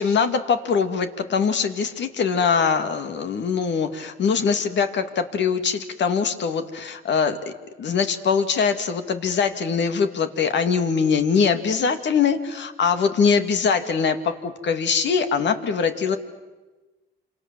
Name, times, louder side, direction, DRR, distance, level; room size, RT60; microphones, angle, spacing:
voice 1, 0.0-7.5 7.8-16.2, left 6 dB, 65° left, 8 dB, 2.5 m, -22 dB
27.5 x 27.0 x 7.7 m, 1.2 s
cardioid pair, 90°, 20 cm